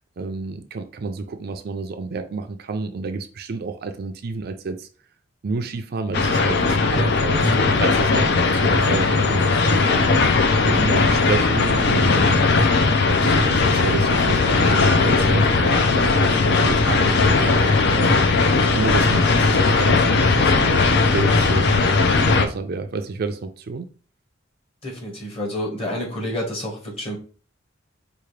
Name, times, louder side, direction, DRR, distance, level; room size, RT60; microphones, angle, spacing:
voice 1, 0.0-4.9 5.4-12.5 13.1-22.0 22.3-23.9, right 4 dB, 55° right, 0.4 m, -30 dB
sound 1, 6.1-22.5, left 3 dB, 60° left, 0.6 m, -18 dB
voice 2, 24.8-27.2, left 1 dB, 30° left, 1.4 m, -29 dB
4.8 x 2.5 x 3.2 m
head